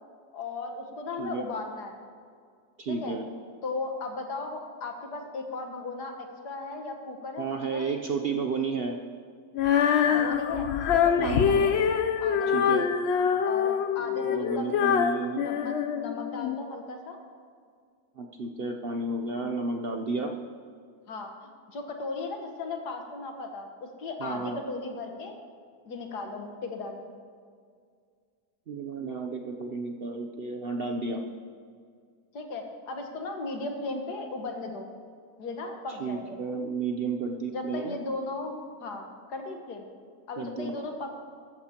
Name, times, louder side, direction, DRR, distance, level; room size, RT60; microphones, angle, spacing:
voice 1, 0.3-1.9 2.9-3.2 3.6-7.5 7.7-7.9 10.1-11.7 12.2-12.9 13.4-15.0 15.4-17.2 21.1-21.3 21.7-25.3 25.9-27.1 32.3-34.9 35.4-36.4 37.5-39.8 40.3-41.1, left 3 dB, 90° left, 3 dB, 1.9 m, -36 dB
voice 2, 2.8-3.3 7.4-9.0 11.2-11.5 12.5-12.9 14.1-15.5 18.2-20.3 24.2-24.6 28.7-31.2 35.9-38.0 40.4-40.8, right 4 dB, 55° right, 3 dB, 0.7 m, -32 dB
Female singing, 9.5-16.6, left 7 dB, 65° left, 0.6 m, -25 dB
14.5 x 13.5 x 2.9 m, 2.1 s
omnidirectional pair, 1.7 m